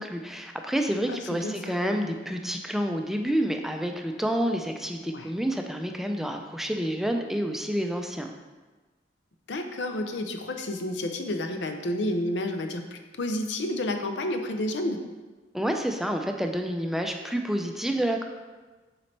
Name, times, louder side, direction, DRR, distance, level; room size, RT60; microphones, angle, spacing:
voice 1, 0.0-8.3 15.5-18.2, equal, ahead, 4 dB, 0.4 m, -29 dB
voice 2, 1.1-1.8 5.0-5.3 9.5-15.0, left 1 dB, 75° left, 6 dB, 0.6 m, -30 dB
6.9 x 4.1 x 3.3 m, 1.3 s
head